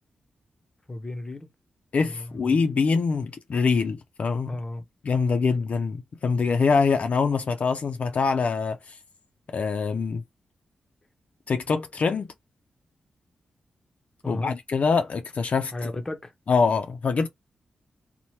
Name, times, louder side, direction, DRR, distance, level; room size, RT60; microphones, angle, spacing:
voice 1, 0.9-1.5 2.0-2.5 4.5-4.8 14.2-14.5 15.7-16.3, left 2 dB, 20° left, 0.7 m, -34 dB
voice 2, 1.9-4.6 5.0-9.0 9.5-10.2 11.5-12.3 14.3-15.7 16.5-17.3, left 5 dB, 55° left, 0.4 m, -24 dB
2.8 x 2.1 x 3.1 m
cardioid pair, 90°, 3 cm